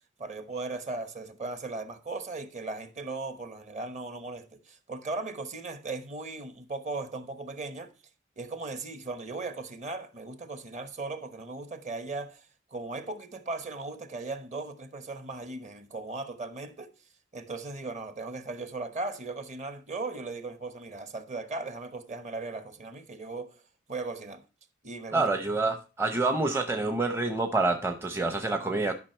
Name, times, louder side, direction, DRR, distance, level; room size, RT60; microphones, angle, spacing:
voice 1, 0.2-7.9 8.4-16.9 17.3-23.6 23.9-24.4 24.8-25.3, right 3 dB, 35° right, 1.0 m, -37 dB
voice 2, 25.1-28.9, right 3 dB, 10° right, 0.7 m, -27 dB
12.0 x 5.8 x 4.4 m
head